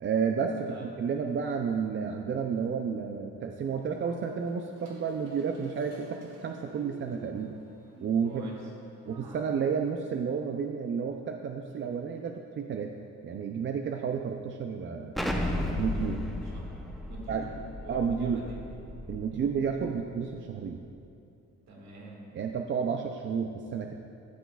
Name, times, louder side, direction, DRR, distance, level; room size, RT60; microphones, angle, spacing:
voice 1, 0.0-7.6 8.0-8.4 9.1-12.9 13.2-15.2 15.7-16.2 17.3-17.5 17.9-18.4 19.1-20.8 22.3-23.9, right 6 dB, 40° right, 4 dB, 0.4 m, -31 dB
voice 2, 0.6-1.2 8.3-8.6 16.5-16.6 17.1-18.6 21.7-22.8, right 2 dB, 65° right, -2 dB, 1.9 m, -47 dB
sound 1, 3.8-9.9, right 1 dB, 85° right, 1.3 m, -52 dB
Explosion, 15.2-19.9, left 1 dB, ahead, 0.7 m, -34 dB
12.5 x 6.8 x 2.3 m, 2.6 s
cardioid pair, 90°, 30 cm